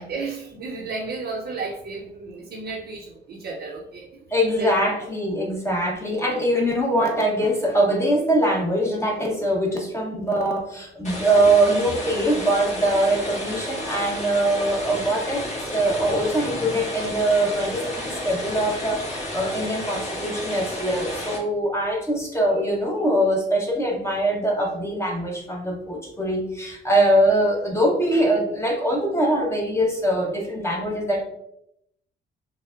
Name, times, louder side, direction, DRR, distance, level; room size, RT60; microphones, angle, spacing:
voice 1, 0.0-4.1 4.6-4.7, right 3 dB, 60° right, -3 dB, 0.7 m, -33 dB
voice 2, 4.3-15.5 15.7-31.2, right 1 dB, 15° left, -1 dB, 0.8 m, -22 dB
sound 1, 11.0-21.4, left 1 dB, 35° left, 1.3 m, -32 dB
5.7 x 2.1 x 2.4 m, 0.79 s
cardioid pair, 90°, 20 cm